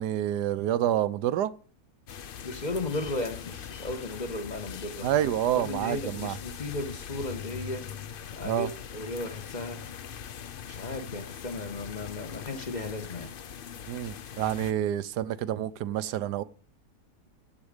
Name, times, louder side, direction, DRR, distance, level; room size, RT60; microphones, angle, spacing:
voice 1, 0.0-1.5 5.0-6.4 8.4-8.7 13.9-16.4, right 11 dB, 85° right, 1.3 m, -28 dB
sound 1, 2.1-14.7, left 8 dB, 60° left, 0.5 m, -41 dB
voice 2, 2.4-5.1 5.6-7.9 8.3-9.8 10.7-13.3, left 2 dB, 30° left, 1.3 m, -35 dB
14.5 x 8.5 x 5.1 m
omnidirectional pair, 1.7 m